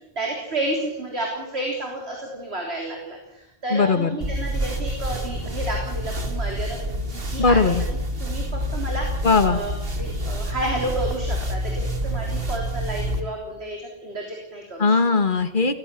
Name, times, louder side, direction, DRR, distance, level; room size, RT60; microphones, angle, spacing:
voice 1, 0.2-7.7 8.2-14.9, right 1 dB, 80° right, 0 dB, 3.9 m, -31 dB
voice 2, 3.7-4.2 7.4-7.8 9.2-9.6 14.8-15.8, left 4 dB, 50° left, 10 dB, 1.8 m, -19 dB
sound 1, 4.2-13.2, equal, 60° right, 2.3 m, -28 dB
18.0 x 15.5 x 9.1 m, 0.94 s
omnidirectional pair, 1.1 m